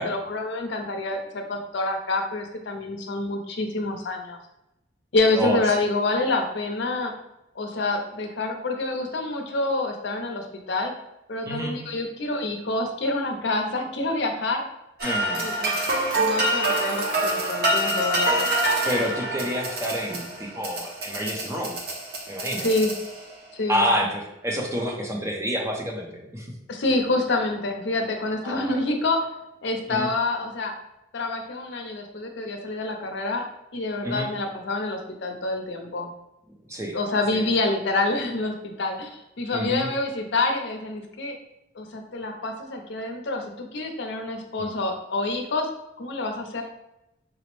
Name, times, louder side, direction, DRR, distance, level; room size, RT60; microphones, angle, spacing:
voice 1, 0.0-4.4 5.1-7.1 7.6-10.9 11.3-14.6 15.4-15.8 16.1-18.4 22.6-22.9 23.5-23.8 26.7-29.3 29.6-30.7 31.1-33.4 33.7-36.1 36.9-41.4 41.8-45.7 46.0-46.6, left 2 dB, 60° left, 3 dB, 0.5 m, -27 dB
voice 2, 15.0-15.5 18.8-21.8 22.3-22.7 23.7-26.5 28.4-28.8 29.9-30.1 34.0-34.3 36.7-37.0 37.3-37.5 39.5-39.9 44.6-44.7, equal, 15° right, 0 dB, 0.5 m, -28 dB
sound 1, 15.0-23.4, right 1 dB, 50° right, 0.7 m, -26 dB
4.9 x 2.0 x 3.0 m, 0.88 s
head